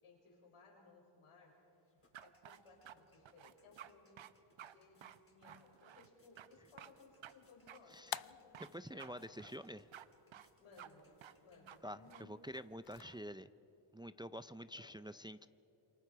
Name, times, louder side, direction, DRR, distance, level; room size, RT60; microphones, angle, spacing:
voice 1, 0.0-1.6 2.2-9.6 10.6-11.1 11.4-12.6 14.7-15.0, left 3 dB, 80° left, -1 dB, 5.9 m, -63 dB
sound 1, 1.4-12.1, left 2 dB, 25° left, 4.1 m, -77 dB
sound 2, 2.1-3.0 3.3-3.9 4.2-4.3 4.6-4.8 5.0-6.1 6.4-6.5 6.8-6.9 7.2-7.3 7.7-7.8 8.1-8.7 9.0-9.1 9.4-10.1 10.3-10.5 10.8-10.9 11.2-11.4 11.7-11.8 12.1-12.2 12.5-13.2, right 10 dB, 65° right, 0.9 m, -54 dB
sound 3, 6.7-13.0, left 12 dB, 50° left, 0.5 m, -53 dB
voice 2, 8.7-9.8 11.8-13.5 13.9-15.5, equal, 10° right, 13 dB, 0.6 m, -48 dB
28.0 x 24.0 x 4.8 m, 3.0 s
cardioid pair, 50°, 50 cm